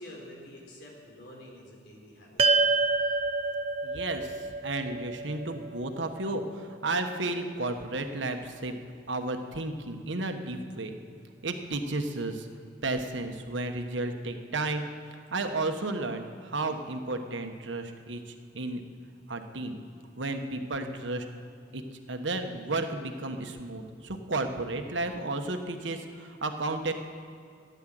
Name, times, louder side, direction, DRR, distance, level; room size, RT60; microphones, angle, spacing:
voice 1, 0.0-2.4, left 1 dB, 65° left, -1 dB, 3.9 m, -47 dB
sound 1, 2.4-6.9, right 3 dB, 30° right, 0.6 m, -28 dB
voice 2, 3.8-8.7 9.1-11.0 11.4-12.5 12.8-14.9 15.3-18.8 19.3-19.8 20.2-21.2 21.7-21.8 22.1-26.9, right 2 dB, 80° right, 6 dB, 1.2 m, -33 dB
15.0 x 10.5 x 7.7 m, 2.4 s
head